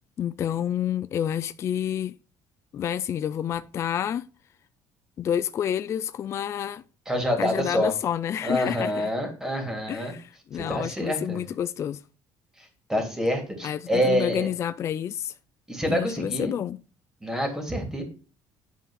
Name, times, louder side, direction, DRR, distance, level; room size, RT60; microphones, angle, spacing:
voice 1, 0.2-2.1 2.7-4.3 5.2-6.8 7.4-9.1 9.9-12.0 13.6-15.3 15.9-16.8, left 9 dB, 35° left, 0.4 m, -29 dB
voice 2, 7.1-7.9 8.4-10.1 10.5-11.4 12.6-14.5 15.7-16.5 17.2-18.0, equal, 5° right, 3.1 m, -27 dB
11.0 x 4.7 x 6.5 m
cardioid pair, 150°, 8 cm